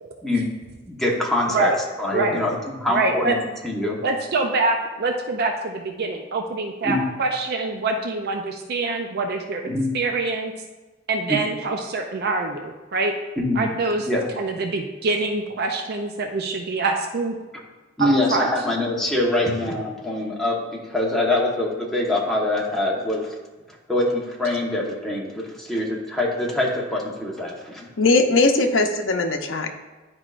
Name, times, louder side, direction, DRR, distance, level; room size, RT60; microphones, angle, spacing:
voice 1, 0.9-1.7 2.0-3.4 3.6-4.0 6.8-7.0 9.7-9.8 11.3-11.4 13.4-13.6 14.0-14.2 18.0-20.6 20.9-23.3 23.9-27.9, left 1 dB, ahead, -4 dB, 1.2 m, -24 dB
voice 2, 2.9-3.4 4.0-10.5 11.1-13.1 13.6-14.1 14.4-17.3 18.0-18.5, right 3 dB, 55° right, 3 dB, 0.5 m, -25 dB
voice 3, 28.0-29.7, left 3 dB, 75° left, 5 dB, 0.7 m, -19 dB
11.0 x 4.8 x 2.5 m, 1.2 s
head